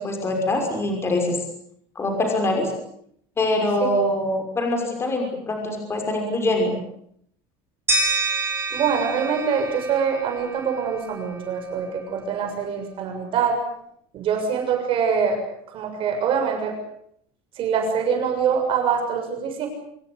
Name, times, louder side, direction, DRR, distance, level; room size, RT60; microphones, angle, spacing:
voice 1, 0.0-1.4 2.0-2.7 3.4-6.7, left 1 dB, 20° left, 3 dB, 6.0 m, -24 dB
sound 1, 7.9-10.8, right 3 dB, 20° right, 6.6 m, -27 dB
voice 2, 8.7-13.6 14.1-15.4 15.7-16.8 17.6-19.7, right 6 dB, 40° right, 4 dB, 6.8 m, -24 dB
25.5 x 22.5 x 8.2 m, 0.69 s
cardioid pair, 160°, 13 cm